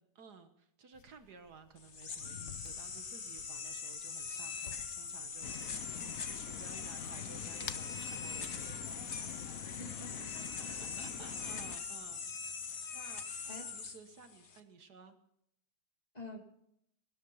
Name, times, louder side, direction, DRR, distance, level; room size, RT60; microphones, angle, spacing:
voice 1, 0.2-9.1 10.4-13.3 13.7-15.2, right 5 dB, 70° right, 8 dB, 1.8 m, -55 dB
sound 1, 0.9-9.5, left 10 dB, 75° left, 1.3 m, -54 dB
sound 2, 1.8-14.6, left 5 dB, 45° left, 1.4 m, -42 dB
sound 3, 5.4-11.8, left 9 dB, 60° left, 1.2 m, -47 dB
voice 2, 9.8-10.9 13.5-13.6 16.1-16.4, left 1 dB, 25° left, 2 dB, 2.6 m, -48 dB
19.5 x 13.0 x 5.5 m, 0.76 s
omnidirectional pair, 1.8 m